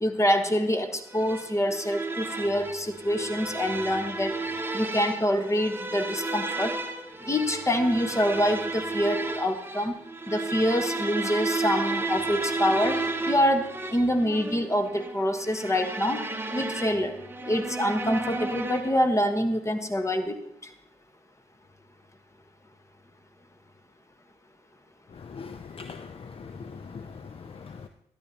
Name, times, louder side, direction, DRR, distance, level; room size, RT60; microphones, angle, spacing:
voice 1, 0.0-4.4 4.7-6.8 7.2-9.9 10.3-16.2 16.5-17.2 17.4-20.7, equal, 20° left, 7 dB, 1.4 m, -26 dB
sound 1, 1.1-19.1, right 2 dB, 15° right, 1.1 m, -33 dB
voice 2, 25.3-27.1 27.6-27.8, left 5 dB, 40° left, 10 dB, 0.5 m, -41 dB
12.0 x 11.0 x 2.9 m, 0.75 s
hypercardioid pair, 40°, 14 cm